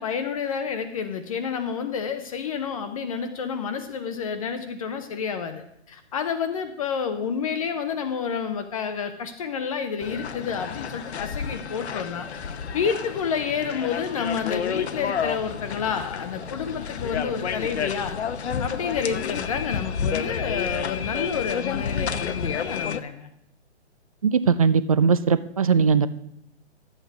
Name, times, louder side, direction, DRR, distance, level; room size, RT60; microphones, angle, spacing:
voice 1, 0.0-12.3 12.7-18.2 18.6-23.3, left 6 dB, 30° left, 7 dB, 0.7 m, -29 dB
sound 1, 10.0-23.0, left 7 dB, 70° left, 0.9 m, -30 dB
voice 2, 24.2-26.1, right 6 dB, 35° right, 14 dB, 0.4 m, -19 dB
12.0 x 8.1 x 4.6 m, 0.76 s
hypercardioid pair, 150°, 34 cm